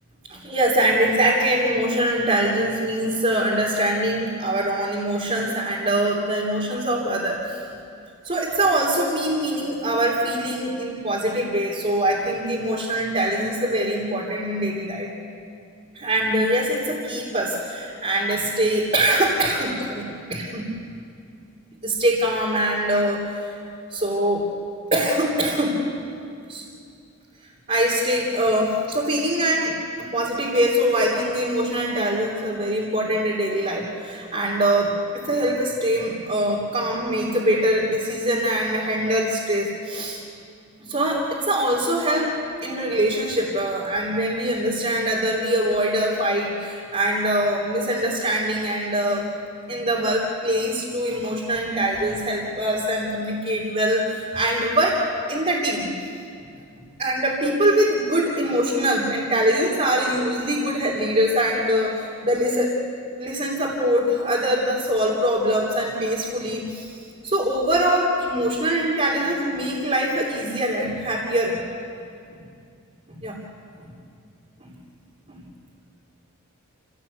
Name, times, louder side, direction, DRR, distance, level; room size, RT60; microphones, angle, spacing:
voice 1, 0.3-7.6 8.2-15.1 15.9-20.7 21.8-23.5 23.9-24.4 24.9-25.8 26.5-26.6 27.7-40.2 40.8-42.3 42.6-49.3 49.7-55.9 57.0-62.8 63.2-67.0 67.2-71.6 73.1-73.4 73.8-73.9 74.6-74.7 75.3-75.4, right 1 dB, 30° right, -5 dB, 3.1 m, -23 dB
28.5 x 17.0 x 8.3 m, 2.4 s
head